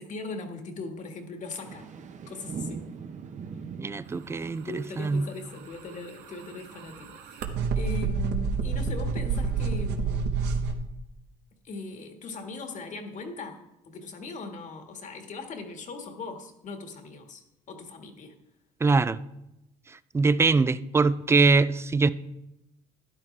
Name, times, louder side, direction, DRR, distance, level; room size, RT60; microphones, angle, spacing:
voice 1, 0.0-1.8 2.3-2.8 4.6-7.4 7.7-10.2 11.6-18.3, left 3 dB, 45° left, 1.7 m, -39 dB
sound 1, 1.6-6.8, right 5 dB, 45° right, 0.9 m, -42 dB
voice 2, 3.8-5.3 18.8-19.2 20.1-22.1, right 4 dB, 15° right, 0.4 m, -23 dB
sound 2, 5.6-10.7, right 5 dB, 85° right, 1.2 m, -29 dB
12.5 x 10.5 x 3.3 m
cardioid pair, 110°, 17 cm